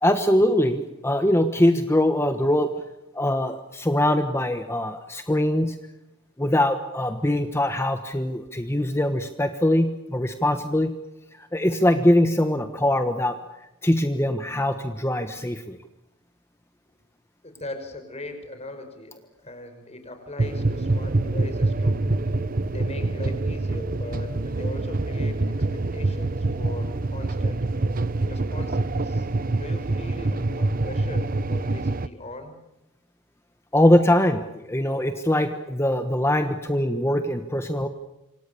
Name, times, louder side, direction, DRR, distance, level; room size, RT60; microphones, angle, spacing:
voice 1, 0.0-2.7 3.1-5.7 6.4-10.9 11.3-13.4 13.8-15.8 33.7-37.9, left 1 dB, 10° left, 7 dB, 1.3 m, -22 dB
voice 2, 17.4-19.1 19.4-22.0 22.7-27.6 28.3-29.3 29.6-32.6, left 1 dB, 30° left, 7 dB, 5.6 m, -39 dB
sound 1, 20.4-32.1, right 2 dB, 45° right, 0.9 m, -25 dB
27.5 x 26.0 x 7.0 m, 0.94 s
head